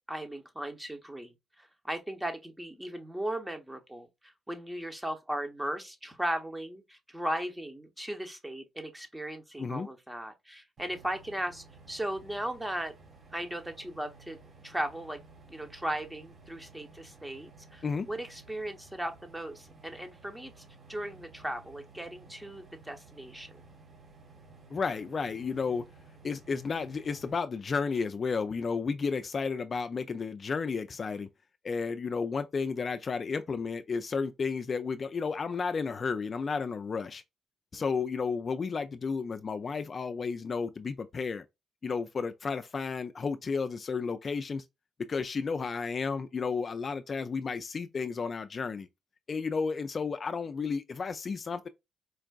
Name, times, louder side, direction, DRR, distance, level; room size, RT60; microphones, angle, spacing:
voice 1, 0.1-12.9 13.3-14.4 14.6-15.2 15.5-23.5 37.7-37.8, right 1 dB, 10° right, 0.9 m, -37 dB
sound 1, 10.8-27.3, right 3 dB, 45° right, 1.4 m, -55 dB
voice 2, 24.7-25.8 26.2-31.3 31.6-37.2 37.7-41.4 41.8-44.6 45.1-48.9 49.3-51.7, left 5 dB, 45° left, 0.3 m, -32 dB
4.5 x 2.4 x 2.3 m
cardioid pair, 75°, 0 cm